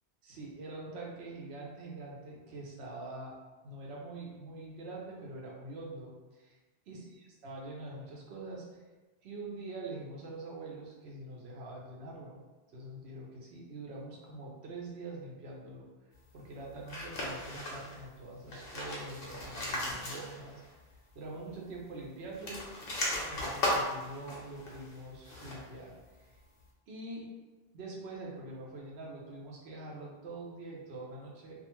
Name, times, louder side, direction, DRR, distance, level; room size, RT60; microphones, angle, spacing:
voice 1, 0.2-3.3 3.6-6.6 6.9-7.1 7.4-8.6 9.2-12.4 12.7-15.8 16.3-20.6 21.1-22.7 23.2-26.4 26.9-27.3 27.7-31.7, right 2 dB, 80° right, -3 dB, 0.9 m, -44 dB
sound 1, 16.9-18.0 18.4-20.7 20.9-21.0 22.2-25.8, left 1 dB, 65° left, 0.9 m, -37 dB
2.4 x 2.3 x 2.9 m, 1.2 s
omnidirectional pair, 1.1 m